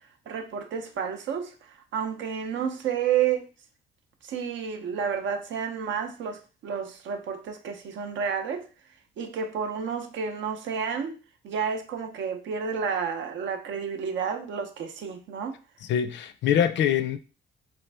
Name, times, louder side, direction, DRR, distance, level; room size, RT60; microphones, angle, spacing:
voice 1, 0.3-1.5 1.9-3.5 4.2-8.7 9.2-11.2 11.4-15.5, right 7 dB, 70° right, 0.6 m, -30 dB
voice 2, 15.9-17.2, left 9 dB, 65° left, 0.4 m, -24 dB
3.0 x 2.5 x 3.3 m
cardioid pair, 90°, 20 cm